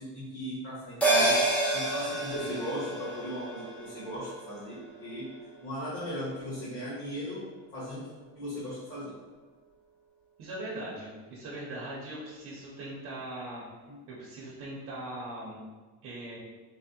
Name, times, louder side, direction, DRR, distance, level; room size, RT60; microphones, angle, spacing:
voice 1, 0.0-1.4 1.7-5.3 5.6-7.4 7.7-8.1 8.3-9.1 13.9-14.0, equal, 35° left, -10 dB, 1.1 m, -37 dB
sound 1, 1.0-5.7 6.0-6.1, right 2 dB, 5° left, 0.3 m, -29 dB
voice 2, 10.4-13.6 14.1-15.6 16.0-16.4, right 1 dB, 50° right, -5 dB, 0.7 m, -40 dB
3.4 x 2.1 x 2.7 m, 1.4 s
cardioid pair, 150°, 33 cm